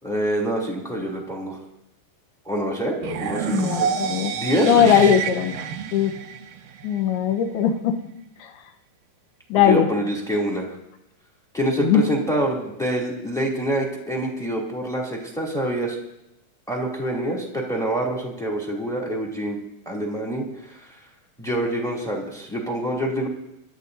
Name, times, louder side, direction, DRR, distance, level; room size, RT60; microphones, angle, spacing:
voice 1, 0.0-1.6 2.4-3.9 4.3-5.1 9.5-10.7 11.5-16.0 16.7-19.6 19.8-21.0 21.4-23.3, right 1 dB, ahead, -2 dB, 1.4 m, -26 dB
sound 1, 3.0-7.0, right 7 dB, 70° right, 2.1 m, -28 dB
voice 2, 3.5-4.3 4.6-5.5 5.9-6.1 6.8-7.9 9.5-9.9 11.8-12.0, left 8 dB, 75° left, 6 dB, 2.7 m, -19 dB
27.5 x 13.0 x 2.7 m, 0.87 s
omnidirectional pair, 5.0 m